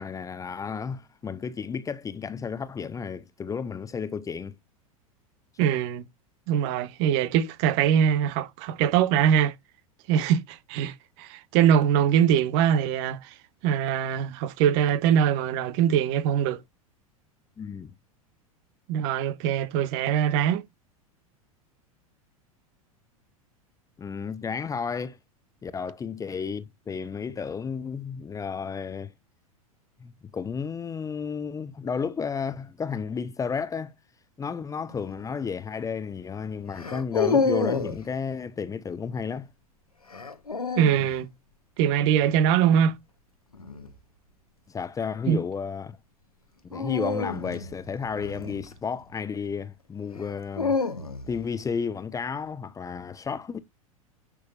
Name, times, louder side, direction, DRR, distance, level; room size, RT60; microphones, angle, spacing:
voice 1, 0.0-4.5 17.6-17.9 24.0-25.2 25.6-29.1 30.0-33.9 34.4-39.5 44.7-46.0 46.6-50.8 51.3-53.6, left 6 dB, 20° left, 0.9 m, -32 dB
voice 2, 5.6-6.0 6.5-9.5 10.1-13.3 13.6-16.6 18.9-20.6 40.8-41.3 41.8-42.9 45.3-45.4, right 9 dB, 50° right, 1.5 m, -22 dB
sound 1, 34.9-35.2 36.7-38.0 40.1-41.1 43.5-43.9 46.7-49.1 50.1-51.4, left 4 dB, 90° left, 1.8 m, -29 dB
10.5 x 6.6 x 2.6 m
figure-of-eight pair, 90°, 19 cm